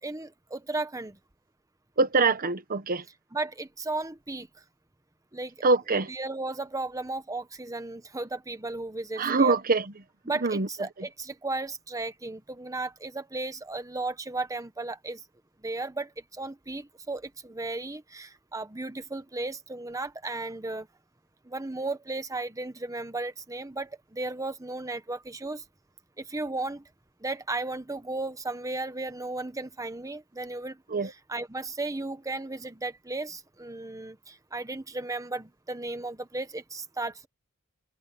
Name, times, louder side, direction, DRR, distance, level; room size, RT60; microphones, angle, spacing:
voice 1, 0.0-1.2 3.3-4.5 5.3-5.5 6.1-9.6 10.2-15.2 15.6-20.9 21.4-25.6 26.2-26.8 27.2-37.3, right 2 dB, 15° right, 1.0 m, -35 dB
voice 2, 2.0-3.0 5.6-6.1 9.2-9.8 10.4-10.7 30.9-31.1, right 3 dB, 40° right, 1.1 m, -24 dB
head